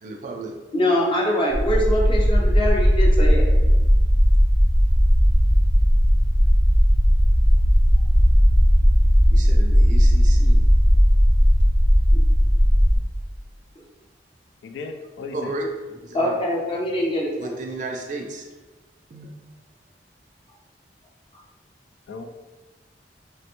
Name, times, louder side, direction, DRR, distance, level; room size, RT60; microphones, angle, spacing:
voice 1, 0.0-0.5 9.3-10.6 15.3-16.4 17.4-18.5 19.1-19.3, right 2 dB, 45° right, 1 dB, 0.4 m, -33 dB
voice 2, 0.7-3.4 12.1-12.2 13.8-13.9 16.1-17.5, equal, 30° left, -1 dB, 0.5 m, -23 dB
sound 1, 1.5-13.0, equal, 55° left, 0.9 m, -16 dB
voice 3, 14.6-15.5 22.1-22.3, left 3 dB, 90° left, 6 dB, 0.3 m, -35 dB
3.1 x 2.1 x 2.9 m, 1.2 s
head